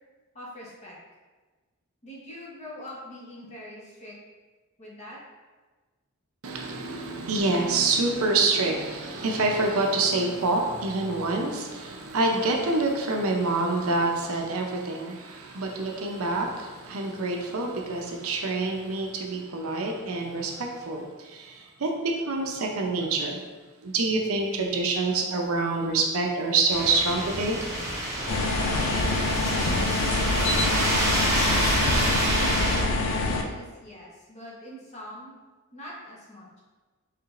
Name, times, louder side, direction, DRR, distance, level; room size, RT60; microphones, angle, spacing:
voice 1, 0.3-1.0 2.0-4.2 4.8-5.2 32.3-35.4 35.7-36.6, equal, 30° left, -4 dB, 0.9 m, -43 dB
voice 2, 6.4-23.4 23.8-27.6, right 3 dB, 65° right, 1 dB, 0.6 m, -26 dB
sound 1, 26.7-32.8, right 1 dB, 15° right, 0.9 m, -27 dB
sound 2, 28.3-33.4, left 2 dB, 60° left, 0.4 m, -26 dB
4.7 x 3.2 x 2.4 m, 1.3 s
head